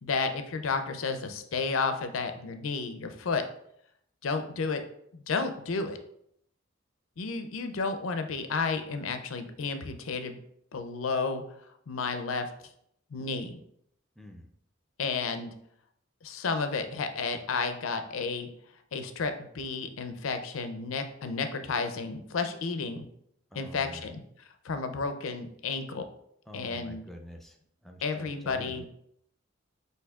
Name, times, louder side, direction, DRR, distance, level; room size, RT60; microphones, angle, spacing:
voice 1, 0.0-3.4 4.2-4.8 5.1-6.0 7.2-10.4 10.7-11.4 11.9-12.5 13.1-13.6 15.0-15.5 16.2-18.5 18.9-23.1 23.5-26.0 26.5-27.0 28.0-28.8, left 4 dB, 80° left, 8 dB, 0.5 m, -32 dB
voice 2, 14.2-14.5 23.5-24.1 26.5-27.6 27.8-28.9, equal, ahead, 3 dB, 0.5 m, -46 dB
7.9 x 2.7 x 2.3 m, 0.72 s
head